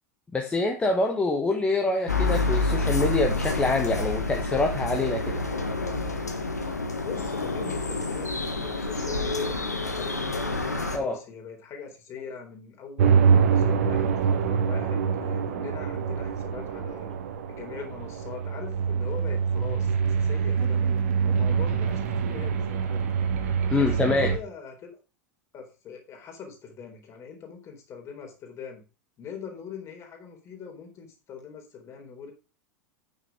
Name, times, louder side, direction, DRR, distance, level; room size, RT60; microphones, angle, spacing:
voice 1, 0.3-5.4 10.9-11.2 23.7-24.3, left 3 dB, 15° left, 2 dB, 1.5 m, -25 dB
sound 1, 2.1-11.0, left 3 dB, 80° left, 1.7 m, -28 dB
voice 2, 7.0-10.5 10.9-17.1 17.5-20.9 21.3-23.1 23.7-24.9 25.5-28.8 29.2-32.3, left 6 dB, 35° left, 3 dB, 3.9 m, -41 dB
sound 2, 13.0-24.4, right 6 dB, 60° right, 1.6 m, -25 dB
9.3 x 6.8 x 4.9 m, 0.33 s
figure-of-eight pair, 80°, 9 cm